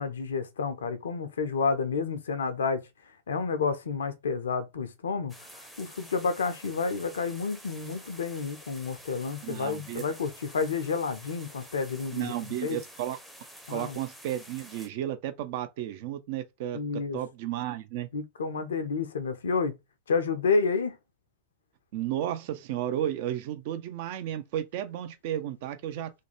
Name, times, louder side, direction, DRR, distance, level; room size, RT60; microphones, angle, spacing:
voice 1, 0.0-2.9 3.3-5.3 5.8-12.3 12.6-12.8 13.7-14.0 16.7-17.2 18.1-19.7 20.1-21.0, left 5 dB, 65° left, 0.4 m, -30 dB
sound 1, 5.3-14.9, equal, ahead, 0.6 m, -49 dB
voice 2, 9.4-10.0 12.1-13.2 13.7-18.1 21.9-26.1, right 11 dB, 50° right, 0.4 m, -33 dB
2.6 x 2.2 x 2.7 m
figure-of-eight pair, 90°, 0 cm